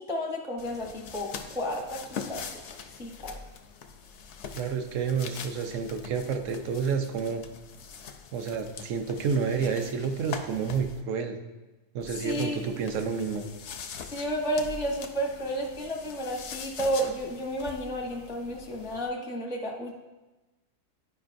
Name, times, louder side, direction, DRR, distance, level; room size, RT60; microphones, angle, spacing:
voice 1, 0.0-2.4 3.0-3.3 12.1-12.6 14.0-19.9, equal, 5° right, -1 dB, 0.3 m, -32 dB
sound 1, 0.6-11.0 12.0-19.1, left 6 dB, 70° left, 0.6 m, -43 dB
voice 2, 4.6-7.4 8.3-11.4 11.9-13.4, right 6 dB, 65° right, 6 dB, 0.9 m, -29 dB
10.5 x 4.9 x 2.5 m, 1.1 s
omnidirectional pair, 1.7 m